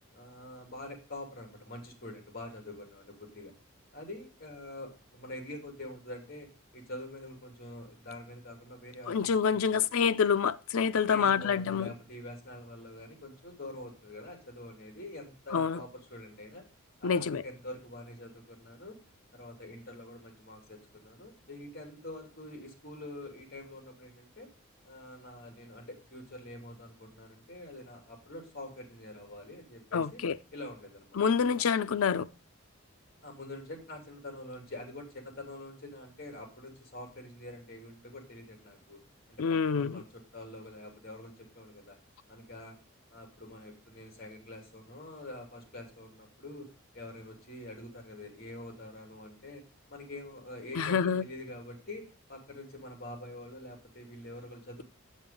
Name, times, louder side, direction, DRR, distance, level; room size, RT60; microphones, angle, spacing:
voice 1, 0.1-3.5 3.9-9.9 11.1-16.7 17.0-19.0 19.3-24.5 24.8-30.2 30.5-31.2 33.2-39.0 39.3-42.0 42.3-42.8 43.1-46.7 46.9-49.6 49.9-54.8, left 1 dB, 45° left, 2.9 m, -46 dB
voice 2, 9.1-11.9 15.5-15.8 17.0-17.4 29.9-30.4 31.2-32.3 39.4-40.0 50.8-51.2, left 6 dB, 80° left, 0.5 m, -27 dB
7.8 x 7.3 x 3.7 m
head